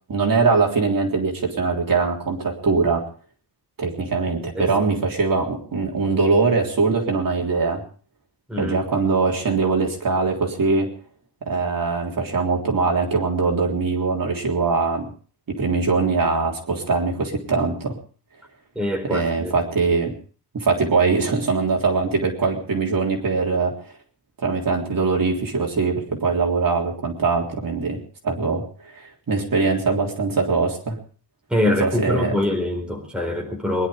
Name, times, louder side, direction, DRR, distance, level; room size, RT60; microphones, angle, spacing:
voice 1, 0.1-3.0 3.8-7.8 8.6-10.9 11.4-15.1 15.5-18.0 19.1-20.2 20.5-23.9 24.4-28.0 28.2-31.0 31.7-32.4, right 4 dB, 55° right, 0 dB, 3.6 m, -22 dB
voice 2, 18.7-19.6 31.5-33.9, left 1 dB, ahead, 0 dB, 4.3 m, -24 dB
23.0 x 11.5 x 5.1 m, 0.42 s
wide cardioid pair, 175°, 40 cm